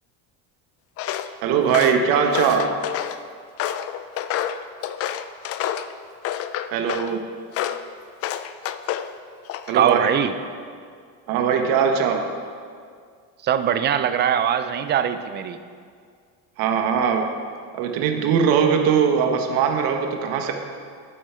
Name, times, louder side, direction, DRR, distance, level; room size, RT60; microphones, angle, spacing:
Walk footsteps, 1.0-1.3 1.7-3.2 3.6-5.9 6.2-7.1 7.5-7.8 8.2-9.1 9.5-9.9, left 11 dB, 40° left, 0.4 m, -28 dB
voice 1, 1.4-2.7 6.7-7.2 9.7-10.1 11.3-12.2 16.6-17.3 17.7-20.5, right 7 dB, 65° right, 4 dB, 1.1 m, -20 dB
voice 2, 9.7-10.3 13.4-15.6, right 9 dB, 30° right, 10 dB, 0.4 m, -21 dB
10.0 x 8.2 x 4.4 m, 2.1 s
cardioid pair, 140°, 37 cm